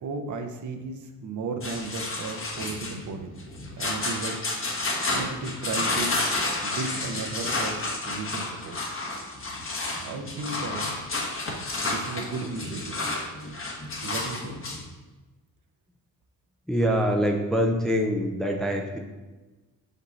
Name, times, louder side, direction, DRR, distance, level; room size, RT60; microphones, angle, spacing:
voice 1, 0.0-3.3 3.8-4.4 5.1-6.2 6.6-8.8 9.9-10.9 11.8-13.0 14.0-14.6, right 3 dB, 50° right, 5 dB, 0.8 m, -34 dB
sound 1, 1.6-14.8, left 2 dB, 35° left, 1.3 m, -31 dB
voice 2, 16.7-19.0, equal, ahead, 2 dB, 0.6 m, -24 dB
5.4 x 5.3 x 4.0 m, 1.2 s
cardioid pair, 105°, 37 cm